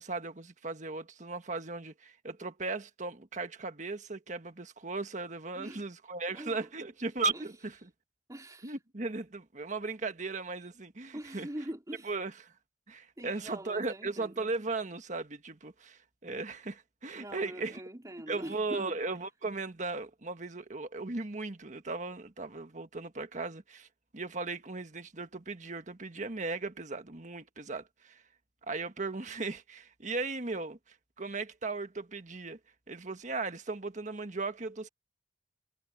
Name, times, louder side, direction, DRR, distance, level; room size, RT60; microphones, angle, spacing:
voice 1, 0.0-7.9 8.6-11.5 12.0-12.5 12.9-17.8 18.3-23.9 24.1-28.2 28.7-32.6 32.9-34.9, right 3 dB, 45° right, 1.5 m, -37 dB
voice 2, 5.5-5.9 6.3-6.7 7.3-7.4 8.3-8.7 11.1-12.1 13.2-14.3 17.1-19.0, right 1 dB, 20° right, 3.1 m, -43 dB
head